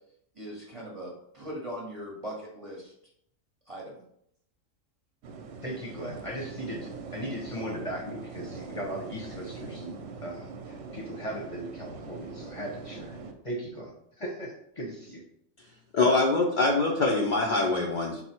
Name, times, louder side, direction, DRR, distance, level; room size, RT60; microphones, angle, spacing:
voice 1, 0.4-2.9 3.7-4.0, equal, 30° right, -3 dB, 0.7 m, -40 dB
sound 1, 5.2-13.3, right 4 dB, 70° right, 0.8 m, -42 dB
voice 2, 5.6-13.1 13.4-15.2, equal, 30° left, -2 dB, 0.7 m, -38 dB
voice 3, 15.9-18.2, left 3 dB, 75° left, -1 dB, 0.4 m, -24 dB
4.3 x 2.0 x 4.2 m, 0.72 s
omnidirectional pair, 1.4 m